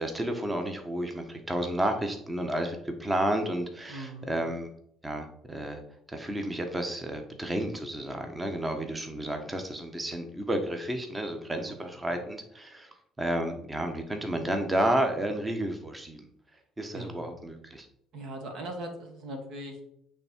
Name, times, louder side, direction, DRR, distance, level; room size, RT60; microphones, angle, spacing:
voice 1, 0.0-4.7 5.0-5.8 6.1-12.9 13.2-16.3 16.8-17.9, right 1 dB, 15° right, 5 dB, 1.3 m, -31 dB
voice 2, 3.9-4.4 11.7-12.2 16.9-17.4 18.1-19.8, right 1 dB, 65° right, 4 dB, 1.9 m, -40 dB
8.6 x 3.6 x 4.5 m, 0.73 s
supercardioid pair, 70°, 0 cm